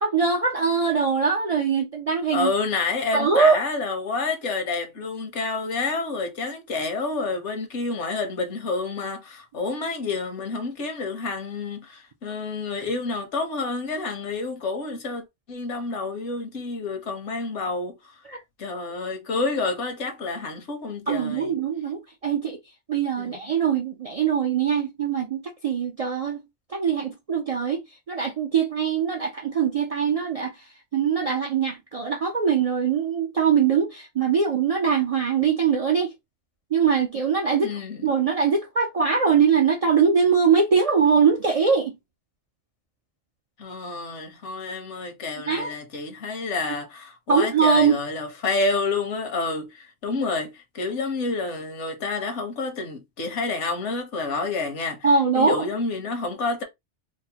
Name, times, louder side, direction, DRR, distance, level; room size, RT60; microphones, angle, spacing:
voice 1, 0.0-2.5 3.1-3.6 18.3-18.4 21.1-22.6 22.9-26.4 26.7-30.7 30.9-36.1 36.7-42.0 45.5-45.7 47.3-48.0 55.0-55.6, right 6 dB, 65° right, 0.3 m, -22 dB
voice 2, 2.3-18.1 18.6-21.5 23.2-23.5 37.6-38.1 43.6-55.1 55.3-56.6, left 3 dB, 75° left, 1.2 m, -29 dB
4.3 x 2.0 x 2.8 m
omnidirectional pair, 1.2 m